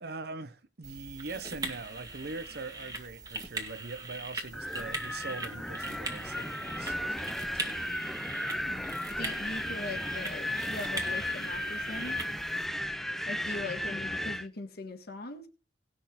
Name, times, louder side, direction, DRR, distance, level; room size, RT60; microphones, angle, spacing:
voice 1, 0.0-7.8, right 3 dB, 60° right, 0.9 m, -42 dB
sound 1, 0.8-12.7, right 2 dB, 20° right, 1.8 m, -41 dB
Wind, 4.5-14.5, left 1 dB, ahead, 0.4 m, -35 dB
voice 2, 9.2-12.2 13.3-15.5, left 3 dB, 60° left, 1.7 m, -40 dB
18.5 x 6.4 x 3.7 m
head